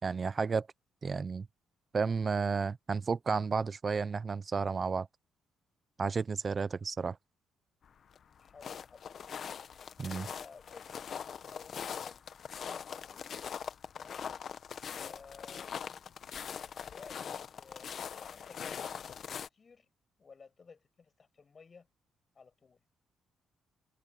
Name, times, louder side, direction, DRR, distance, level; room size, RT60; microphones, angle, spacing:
voice 1, 0.0-0.7 1.0-1.5 1.9-5.1 6.0-7.2 10.0-10.3, right 5 dB, 35° right, 0.7 m, -32 dB
voice 2, 6.6-6.9 8.4-9.4 10.3-11.1 11.3-12.2 12.6-14.3 14.9-15.8 16.6-19.2 19.5-19.9 20.2-21.9 22.3-22.8, left 5 dB, 40° left, 7.3 m, -56 dB
sound 1, 7.8-19.5, left 7 dB, 55° left, 1.2 m, -42 dB
cardioid pair, 90°, 0 cm